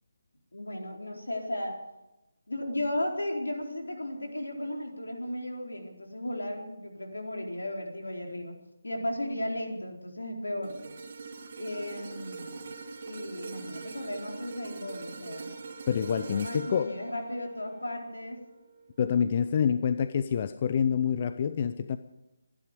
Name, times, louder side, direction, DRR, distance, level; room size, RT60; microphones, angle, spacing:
voice 1, 0.5-1.8 2.5-8.5 8.8-10.8 11.6-12.6 13.0-15.5 15.9-18.4, left 1 dB, 75° left, 2 dB, 4.3 m, -35 dB
sound 1, 10.6-19.0 19.4-19.6, right 4 dB, 40° right, 2.7 m, -43 dB
voice 2, 15.9-16.9 19.0-22.0, left 7 dB, 30° left, 12 dB, 0.6 m, -27 dB
24.5 x 11.5 x 5.2 m, 0.95 s
figure-of-eight pair, 150°, 0 cm